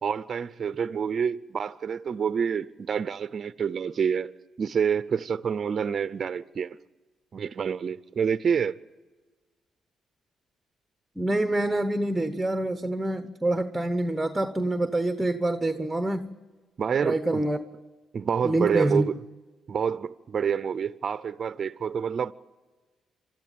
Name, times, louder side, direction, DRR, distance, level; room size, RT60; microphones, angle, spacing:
voice 1, 0.0-4.3 4.6-6.8 7.3-8.8 16.8-17.5 18.1-19.1 19.7-22.3, right 7 dB, 50° right, 0.6 m, -28 dB
voice 2, 11.2-16.4 17.0-17.6 18.4-19.1, right 1 dB, 10° right, 1.0 m, -26 dB
26.5 x 13.0 x 9.2 m
cardioid pair, 90°, 0 cm